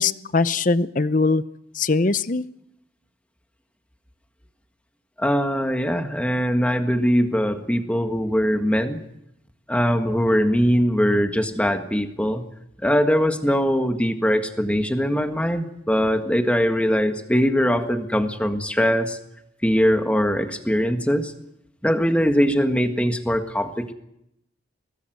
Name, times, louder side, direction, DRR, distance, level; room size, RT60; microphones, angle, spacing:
voice 1, 0.0-1.4 1.7-2.4, left 3 dB, 40° left, 15 dB, 0.7 m, -21 dB
voice 2, 5.2-9.0 9.7-12.4 12.8-19.2 19.6-21.3 21.8-23.9, equal, 5° left, 6 dB, 1.7 m, -21 dB
23.0 x 18.5 x 7.8 m, 0.79 s
head